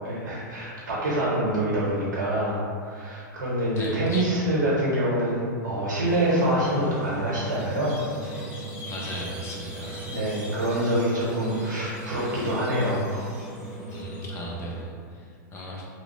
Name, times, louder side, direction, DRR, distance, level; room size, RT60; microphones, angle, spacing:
voice 1, 0.0-8.0 10.1-13.3 15.5-15.6, right 1 dB, 90° right, -7 dB, 0.9 m, -26 dB
voice 2, 3.7-4.5 8.8-10.0 13.9-15.9, left 1 dB, 25° left, -3 dB, 0.5 m, -37 dB
Squeak, 6.0-14.8, right 2 dB, 10° right, 0.7 m, -37 dB
2.8 x 2.0 x 3.0 m, 2.1 s
hypercardioid pair, 125°, 10 cm